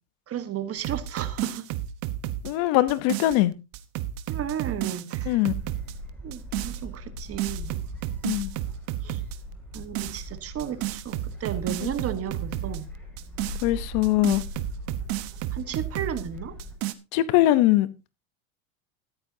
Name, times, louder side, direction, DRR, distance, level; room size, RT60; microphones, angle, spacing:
voice 1, 0.3-1.7 4.3-5.4 6.2-7.8 9.0-9.2 9.7-12.9 15.5-16.6, right 9 dB, 35° right, 1.4 m, -33 dB
sound 1, 0.8-3.4 3.7-5.9 6.3-6.8 7.2-9.4 9.7-10.2 10.6-12.8 13.2-16.2 16.6-16.9, right 13 dB, 55° right, 1.2 m, -32 dB
voice 2, 2.4-3.5 5.3-5.5 8.2-8.5 11.8-11.9 13.6-14.4 17.1-17.9, left 15 dB, 60° left, 1.1 m, -21 dB
Gull seagull, 5.5-16.7, equal, 5° left, 6.1 m, -40 dB
14.0 x 11.0 x 2.8 m
supercardioid pair, 120°, 43 cm